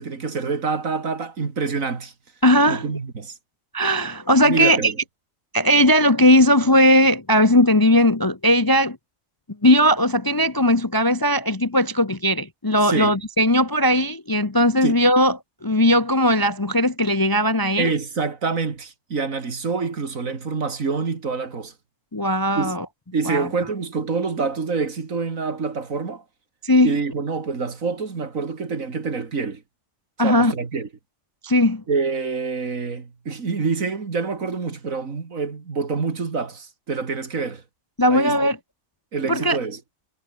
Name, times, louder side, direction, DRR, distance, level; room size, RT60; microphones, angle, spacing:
voice 1, 0.0-2.1 2.7-3.4 4.4-5.0 12.8-13.2 14.8-15.0 17.8-21.7 22.5-22.7 23.1-26.2 26.8-29.6 30.2-30.9 31.9-37.6 38.1-38.5 39.1-39.8, right 4 dB, 60° right, 2.6 m, -26 dB
voice 2, 2.4-2.9 3.7-4.9 5.5-9.0 9.6-15.4 15.6-17.9 22.1-22.8 23.3-23.5 26.6-27.0 30.2-30.5 31.4-31.8 38.0-38.6 39.3-39.6, equal, 15° left, 0.8 m, -18 dB
omnidirectional pair, 1.6 m